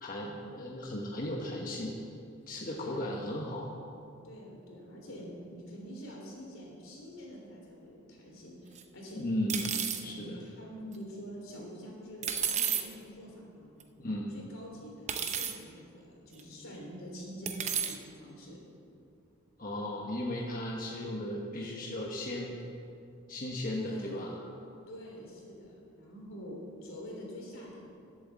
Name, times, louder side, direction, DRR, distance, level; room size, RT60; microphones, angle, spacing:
voice 1, 0.0-2.0 2.5-3.7 9.1-10.4 14.0-14.3 19.6-22.6 23.3-24.4, left 1 dB, 45° left, -2 dB, 1.2 m, -36 dB
voice 2, 2.8-3.1 4.2-9.3 10.0-13.7 14.3-18.6 23.7-24.4 24.9-27.9, equal, 85° left, -2 dB, 3.5 m, -46 dB
sound 1, 8.8-8.9 9.5-10.0 12.2-12.8 13.8-13.9 15.1-15.5 16.4-16.5 17.5-18.0, right 8 dB, 35° right, 0.7 m, -32 dB
11.5 x 8.0 x 7.4 m, 2.5 s
head